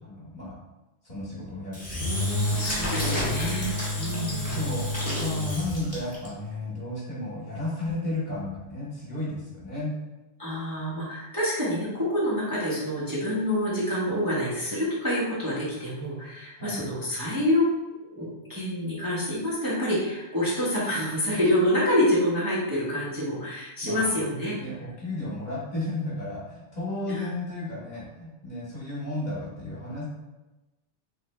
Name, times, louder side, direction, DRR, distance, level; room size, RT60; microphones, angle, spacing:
voice 1, 0.0-0.5 1.0-3.2 4.0-4.1 4.4-9.9 16.6-16.9 23.8-24.1 24.6-30.0, left 2 dB, 40° left, -8 dB, 1.4 m, -34 dB
Engine / Drill, 1.7-6.3, left 1 dB, 15° left, 1.2 m, -29 dB
voice 2, 2.6-4.6 10.4-17.7 18.1-24.5 27.1-27.3, left 1 dB, 20° right, -9 dB, 0.9 m, -27 dB
3.5 x 3.2 x 3.2 m, 1.0 s
omnidirectional pair, 1.2 m